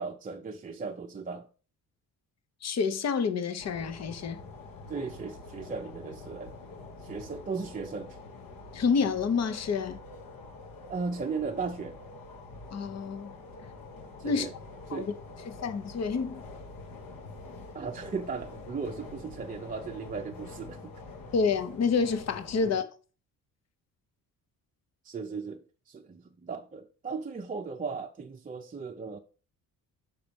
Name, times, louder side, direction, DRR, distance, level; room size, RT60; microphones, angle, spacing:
voice 1, 0.0-1.5 4.9-6.6 7.0-8.2 10.9-12.0 14.2-14.5 14.9-15.1 17.7-20.9 22.6-22.7 25.0-29.2, right 5 dB, 25° right, 0.6 m, -36 dB
voice 2, 2.6-4.4 8.7-10.0 12.7-13.3 14.2-14.5 14.9-15.1 15.6-16.4 21.3-22.9, left 5 dB, 45° left, 1.0 m, -28 dB
sound 1, 3.6-22.7, left 3 dB, 70° left, 1.7 m, -46 dB
5.9 x 4.3 x 5.2 m
cardioid pair, 120°, 36 cm